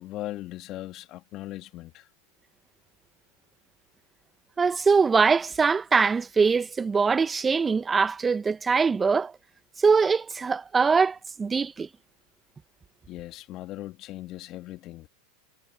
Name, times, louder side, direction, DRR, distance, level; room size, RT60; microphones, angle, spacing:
voice 1, 0.0-2.1 13.1-15.1, left 16 dB, 45° left, 1.3 m, -39 dB
voice 2, 4.6-9.3 9.8-11.9, right 5 dB, 20° right, 0.6 m, -22 dB
hypercardioid pair, 100°, 0 cm